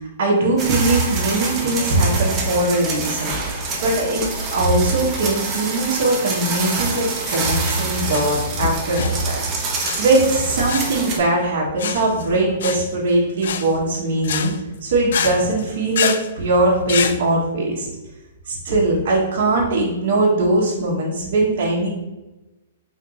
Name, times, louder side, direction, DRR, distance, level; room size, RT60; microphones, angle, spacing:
voice 1, 0.2-3.5 3.8-4.3 4.5-9.4 10.0-14.5 14.8-17.9 18.5-21.9, right 2 dB, 60° right, -4 dB, 1.2 m, -20 dB
sound 1, 0.6-11.2, right 3 dB, 25° right, 0.7 m, -27 dB
sound 2, 6.1-17.2, left 7 dB, 70° left, 0.4 m, -28 dB
4.5 x 3.6 x 2.5 m, 1.0 s
hypercardioid pair, 145°, 0 cm